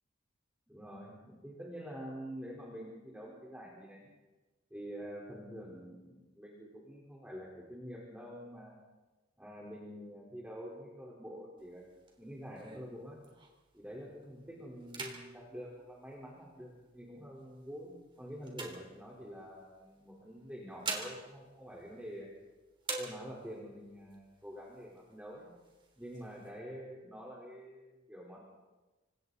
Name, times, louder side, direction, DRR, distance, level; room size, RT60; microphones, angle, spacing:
voice 1, 0.7-4.1 4.7-8.8 9.4-11.8 12.2-13.2 13.7-22.3 23.0-25.5 26.0-28.4, equal, 5° right, -5 dB, 4.2 m, -47 dB
sound 1, 11.6-13.8 14.2-14.5 14.8-16.7 17.4-19.5 20.4-22.5 22.8-23.7 24.1-24.2 24.5-25.1 25.6-26.5, right 3 dB, 25° right, 3.5 m, -45 dB
28.5 x 26.0 x 4.1 m, 1.2 s
head